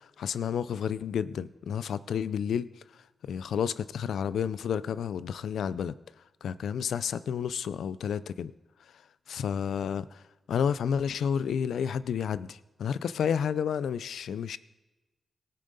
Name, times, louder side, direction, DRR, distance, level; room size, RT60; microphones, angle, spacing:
voice 1, 0.0-2.7 3.2-5.9 6.4-8.5 9.3-10.2 10.5-14.6, left 7 dB, 80° left, 16 dB, 0.4 m, -30 dB
19.0 x 6.6 x 4.1 m, 1.1 s
supercardioid pair, 40°, 0 cm